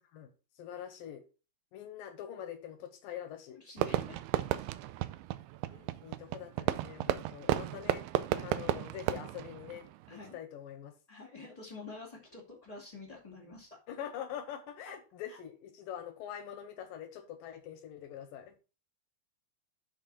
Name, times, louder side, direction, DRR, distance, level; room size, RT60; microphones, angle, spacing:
voice 1, 0.6-1.2 1.7-3.6 5.7-8.0 8.4-9.9 10.1-10.9 13.9-18.5, left 10 dB, 75° left, 7 dB, 2.3 m, -44 dB
voice 2, 3.5-4.7 7.1-7.2 7.7-7.9 8.3-8.5 10.1-10.4 11.1-13.8 14.8-15.0 15.3-15.4, left 3 dB, 20° left, -1 dB, 1.2 m, -48 dB
Fireworks, 3.8-10.3, right 14 dB, 85° right, 2.4 m, -34 dB
10.5 x 4.2 x 4.2 m, 0.34 s
omnidirectional pair, 4.7 m